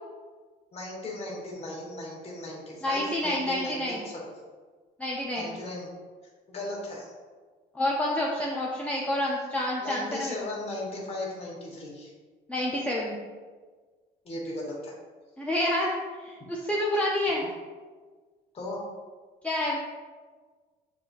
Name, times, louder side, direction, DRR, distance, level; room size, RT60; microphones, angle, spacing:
voice 1, 0.7-4.3 5.3-5.9 6.5-7.1 9.8-12.1 14.2-14.9 18.5-18.8, left 2 dB, 35° left, -3 dB, 1.2 m, -37 dB
voice 2, 2.8-4.1 5.0-5.5 7.7-10.3 12.5-13.2 15.4-17.4 19.4-19.8, left 1 dB, 10° left, -4 dB, 0.5 m, -28 dB
6.8 x 2.6 x 2.4 m, 1.4 s
cardioid pair, 110°, 17 cm